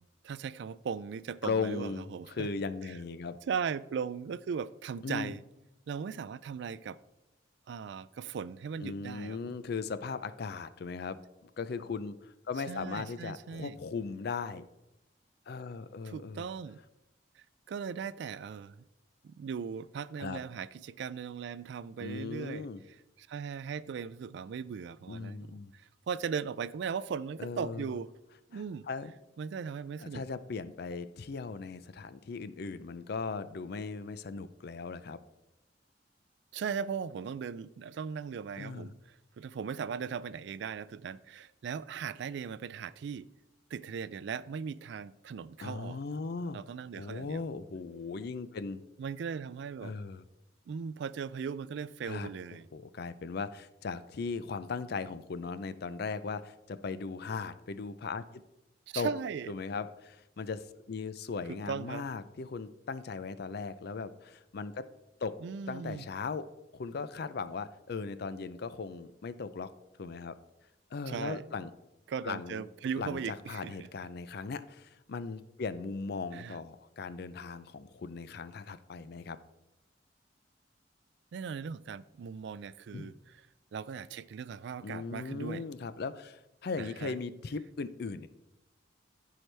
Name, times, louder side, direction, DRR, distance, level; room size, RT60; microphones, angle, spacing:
voice 1, 0.0-2.5 3.5-5.4 5.9-7.0 7.7-9.5 12.7-13.7 16.0-16.8 17.4-18.8 19.2-22.7 23.2-28.1 28.5-28.9 29.4-30.2 36.5-43.3 43.7-46.0 46.5-47.4 49.0-49.9 50.7-52.7 58.9-59.5 61.5-62.1 65.4-66.1 71.1-71.5 72.1-73.9 76.3-76.6 81.3-83.2 83.7-85.6 86.8-87.1, right 6 dB, 65° right, 0.3 m, -38 dB
voice 2, 1.4-3.4 5.0-5.3 8.8-14.6 15.5-16.5 20.2-20.4 22.0-22.8 25.1-25.7 27.4-27.9 28.5-29.1 30.0-35.2 38.6-38.9 45.6-46.6 47.0-48.8 49.8-50.2 52.1-52.3 52.7-58.2 58.9-59.1 59.5-64.9 65.2-65.4 65.7-66.5 66.7-69.7 70.0-70.3 70.9-71.7 72.2-72.6 73.0-79.4 82.9-83.1 84.8-88.3, left 4 dB, 60° left, 0.5 m, -38 dB
14.0 x 4.7 x 3.3 m
head